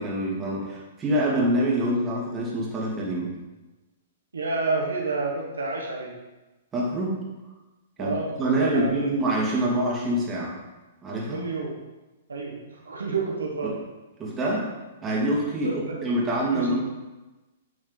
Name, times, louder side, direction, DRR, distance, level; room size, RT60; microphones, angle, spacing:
voice 1, 0.0-3.3 6.7-7.2 8.0-10.5 11.0-11.5 13.6-13.7 14.2-14.7 15.0-16.8, right 1 dB, 20° right, -4 dB, 2.6 m, -26 dB
voice 2, 4.3-6.2 8.0-8.3 8.6-9.1 11.3-11.7 12.3-13.7 15.6-16.0 16.5-16.8, right 3 dB, 85° right, -2 dB, 1.5 m, -29 dB
9.4 x 5.2 x 4.1 m, 1.1 s
hypercardioid pair, 115°, 0 cm